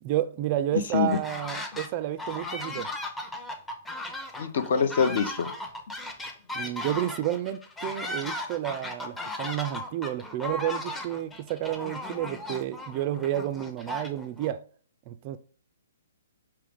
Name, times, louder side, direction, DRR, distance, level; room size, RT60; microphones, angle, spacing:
voice 1, 0.0-2.9 6.5-14.6 15.1-15.4, right 12 dB, 35° right, 0.3 m, -31 dB
sound 1, 0.9-1.9 2.2-14.5, left 1 dB, 10° left, 0.6 m, -37 dB
voice 2, 4.4-5.5, left 6 dB, 60° left, 0.7 m, -25 dB
4.7 x 3.0 x 3.5 m
figure-of-eight pair, 130°, 0 cm